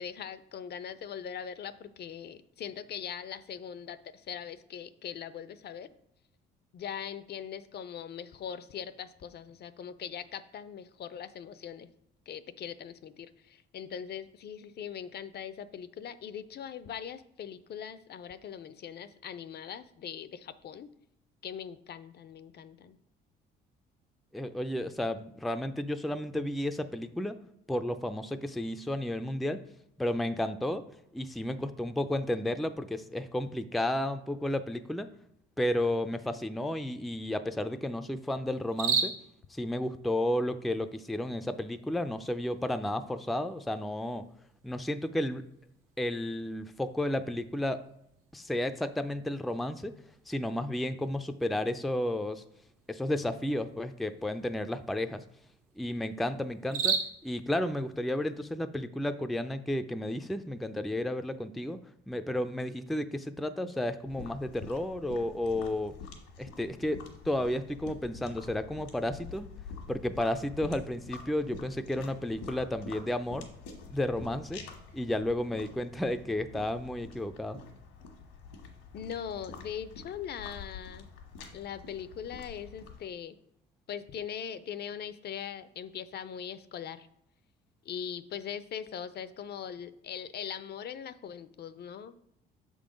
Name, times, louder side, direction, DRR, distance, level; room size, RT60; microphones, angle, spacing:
voice 1, 0.0-5.9 6.7-11.9 12.3-20.9 21.4-23.0 78.9-81.1 81.5-83.4 83.9-87.1 87.9-92.2, left 8 dB, 50° left, 14 dB, 0.5 m, -41 dB
voice 2, 24.3-27.4 27.7-29.6 30.0-30.8 31.1-35.1 35.6-39.1 39.5-44.3 44.6-45.4 46.0-47.8 48.3-50.0 50.3-52.4 52.9-55.2 55.8-61.8 62.1-65.9 66.4-69.5 69.9-73.5 73.9-74.6 74.9-77.6, left 1 dB, ahead, 9 dB, 0.4 m, -32 dB
sound 1, 38.5-58.4, right 6 dB, 85° right, 1.2 m, -41 dB
sound 2, 64.1-83.1, left 5 dB, 85° left, 1.3 m, -47 dB
6.6 x 3.8 x 5.1 m, 0.78 s
supercardioid pair, 70°, 21 cm